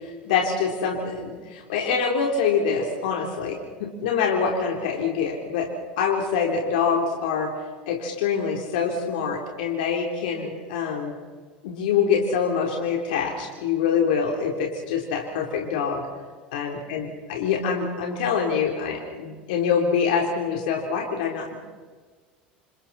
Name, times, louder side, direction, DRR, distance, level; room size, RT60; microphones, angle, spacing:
voice 1, 0.3-5.7 6.0-7.5 7.9-11.2 11.6-16.1 16.5-21.6, left 6 dB, 75° left, 0 dB, 3.7 m, -25 dB
29.0 x 28.0 x 4.3 m, 1.5 s
hypercardioid pair, 80°, 5 cm